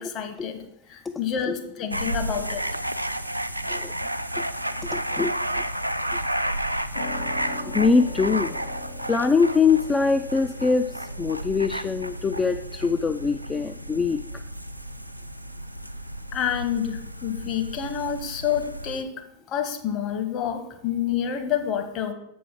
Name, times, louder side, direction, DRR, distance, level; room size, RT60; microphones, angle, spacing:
voice 1, 0.0-2.6 16.3-19.1 19.5-22.1, left 9 dB, 35° left, 7 dB, 1.1 m, -28 dB
sound 1, 1.9-19.0, right 1 dB, 90° right, 0.4 m, -32 dB
voice 2, 4.9-5.6 7.7-8.6 9.1-14.2, left 4 dB, 15° left, 7 dB, 0.4 m, -23 dB
sound 2, 6.9-14.1, left 3 dB, 70° left, 0.9 m, -42 dB
7.5 x 5.4 x 6.0 m, 0.80 s
figure-of-eight pair, 90°, 0 cm